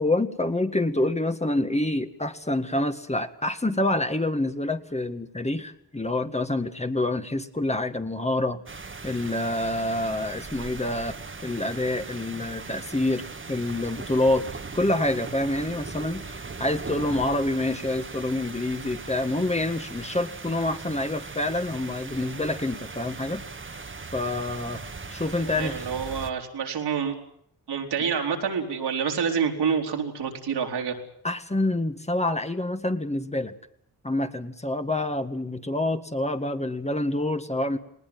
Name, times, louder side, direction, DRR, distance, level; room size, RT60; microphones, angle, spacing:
voice 1, 0.0-8.6 9.0-11.2 11.4-14.4 14.7-23.4 24.1-24.8 25.1-25.8 31.2-33.5 34.0-37.8, left 1 dB, 15° left, 8 dB, 1.8 m, -27 dB
sound 1, 8.7-26.3, right 4 dB, 30° right, 1.6 m, -39 dB
voice 2, 25.4-27.2 27.7-31.0, right 6 dB, 85° right, 2 dB, 3.8 m, -27 dB
20.0 x 19.0 x 9.5 m, 0.71 s
cardioid pair, 60°, 40 cm